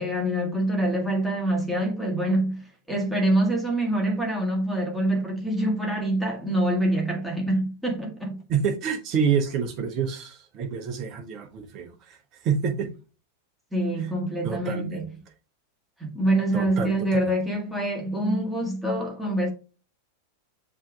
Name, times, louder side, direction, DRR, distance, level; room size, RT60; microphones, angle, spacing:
voice 1, 0.0-8.4 13.7-15.1 16.0-19.5, right 1 dB, ahead, 1.6 m, -25 dB
voice 2, 8.5-12.9 14.0-14.1 14.4-15.0 16.5-17.2, right 6 dB, 35° right, 0.9 m, -28 dB
7.1 x 2.9 x 2.4 m
figure-of-eight pair, 90°, 0 cm